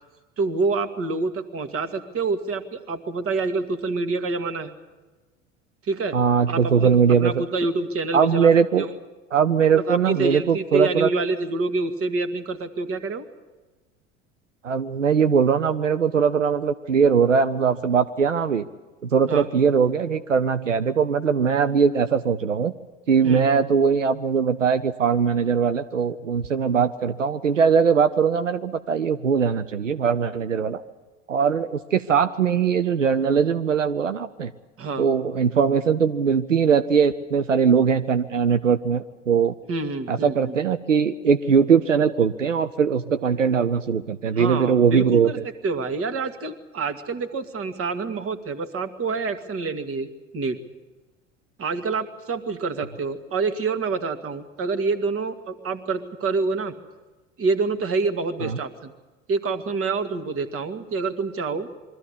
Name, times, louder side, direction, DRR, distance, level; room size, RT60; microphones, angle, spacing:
voice 1, 0.4-4.7 5.8-6.2 6.5-6.9 7.2-8.5 8.8-8.9 9.7-13.2 19.3-19.5 23.2-23.4 34.8-35.1 39.7-40.5 44.4-45.4 45.6-50.6 51.6-56.7 57.4-58.9 59.3-61.7, right 3 dB, 40° right, 10 dB, 1.9 m, -27 dB
voice 2, 6.1-7.4 8.1-8.9 9.3-11.1 14.6-18.7 19.0-22.7 23.1-30.8 31.3-34.5 35.0-39.5 40.1-45.4 58.4-58.6, right 6 dB, 85° right, 11 dB, 0.7 m, -20 dB
23.0 x 14.0 x 9.9 m, 1.2 s
figure-of-eight pair, 70°, 37 cm